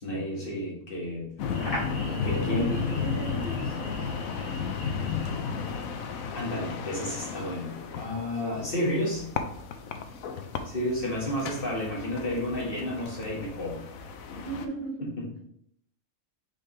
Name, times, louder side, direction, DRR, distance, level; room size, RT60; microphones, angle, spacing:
voice 1, 0.0-1.5 2.2-2.7 6.3-9.3 10.6-13.8 15.0-15.3, left 1 dB, 40° left, -4 dB, 2.0 m, -31 dB
sound 1, 1.4-14.7, left 6 dB, 75° left, 1.1 m, -34 dB
sound 2, 1.5-6.8, equal, 55° left, 2.8 m, -41 dB
voice 2, 2.0-4.1 14.3-15.4, right 3 dB, 50° right, -1 dB, 1.0 m, -38 dB
5.6 x 5.1 x 3.3 m, 0.67 s
omnidirectional pair, 1.5 m